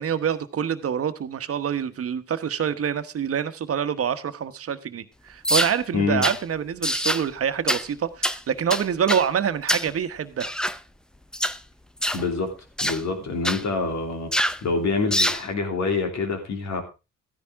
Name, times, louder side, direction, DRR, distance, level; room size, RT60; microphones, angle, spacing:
voice 1, 0.0-10.5, right 8 dB, 50° right, 11 dB, 1.2 m, -26 dB
sound 1, 5.4-5.8 6.2-6.4 6.8-7.2 7.7-7.9 8.2-8.4 8.7-9.3 9.7-9.9 10.4-10.8 11.3-11.6 12.0-12.2 12.8-13.0 13.4-13.6 14.3-14.6 15.1-15.4, equal, 5° left, 0.6 m, -24 dB
voice 2, 5.9-6.3 12.1-12.5 12.8-14.3 14.6-16.8, left 4 dB, 65° left, 5 dB, 3.2 m, -26 dB
14.0 x 10.5 x 3.6 m, 0.29 s
cardioid pair, 90°, 30 cm